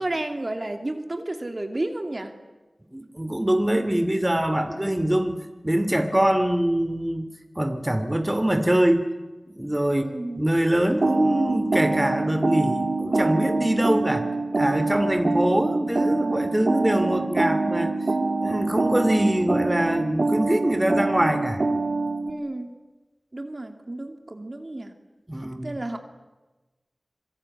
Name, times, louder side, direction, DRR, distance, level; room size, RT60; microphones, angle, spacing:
voice 1, 0.0-2.3 9.9-10.4 22.3-22.7 23.3-24.9 25.6-26.0, right 2 dB, 45° right, 6 dB, 2.8 m, -31 dB
voice 2, 2.9-5.4 5.6-7.3 7.6-9.0 9.5-10.0 10.4-14.3 14.6-17.9 18.4-21.6 25.3-25.8, right 1 dB, 20° right, 9 dB, 2.5 m, -23 dB
sound 1, 11.0-22.3, right 3 dB, 70° right, 2.6 m, -25 dB
26.5 x 22.5 x 9.8 m, 1.2 s
wide cardioid pair, 50°, 0 cm